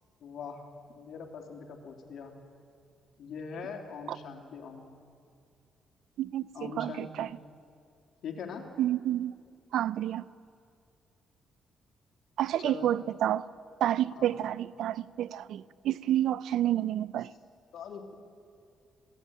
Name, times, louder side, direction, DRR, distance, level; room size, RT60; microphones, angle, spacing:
voice 1, 0.2-0.6 0.9-2.4 3.2-4.9 6.5-7.4 8.2-8.7 12.6-12.9 14.1-14.3 17.7-18.1, left 5 dB, 70° left, 3.4 m, -42 dB
voice 2, 6.2-7.3 8.8-9.4 9.7-10.2 12.4-13.5 13.8-17.3, right 12 dB, 75° right, 0.5 m, -29 dB
21.5 x 17.5 x 9.0 m
cardioid pair, 90°, 0 cm